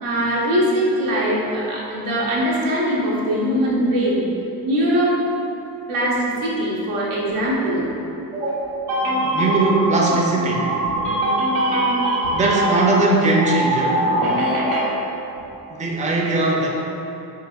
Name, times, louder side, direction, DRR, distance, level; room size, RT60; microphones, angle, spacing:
voice 1, 0.0-4.2 4.6-5.2 5.9-7.9 8.3-10.2 10.5-13.0 13.4-14.9, right 1 dB, 85° right, -6 dB, 0.9 m, -21 dB
voice 2, 9.2-10.7 12.3-14.0 15.7-16.7, right 2 dB, 15° right, -1 dB, 0.5 m, -19 dB
4.7 x 3.0 x 2.3 m, 2.9 s
hypercardioid pair, 50°, 49 cm